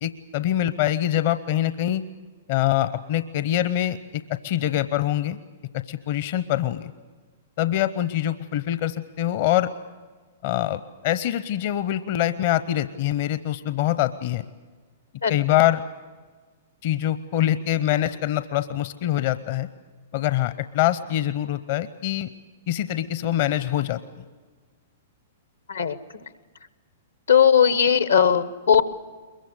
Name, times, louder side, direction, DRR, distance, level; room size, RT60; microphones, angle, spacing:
voice 1, 0.0-2.0 2.5-5.4 5.7-6.9 7.6-9.7 10.4-14.4 15.3-15.8 16.8-19.7 20.1-22.3 22.7-24.0, left 13 dB, 50° left, 13 dB, 0.8 m, -24 dB
voice 2, 27.3-28.8, left 8 dB, 80° left, 14 dB, 1.1 m, -18 dB
22.5 x 22.0 x 8.2 m, 1.4 s
hypercardioid pair, 110°, 0 cm